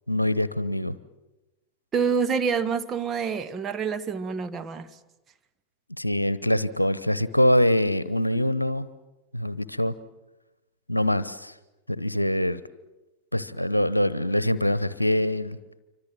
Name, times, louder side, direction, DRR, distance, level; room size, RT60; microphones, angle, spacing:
voice 1, 0.1-1.0 6.0-8.9 9.3-9.9 10.9-11.5 11.9-12.6 13.3-15.6, left 1 dB, 85° left, 0.9 m, -24 dB
voice 2, 1.9-4.9, right 6 dB, 25° right, 1.3 m, -27 dB
28.0 x 25.0 x 7.6 m
figure-of-eight pair, 90°, 0 cm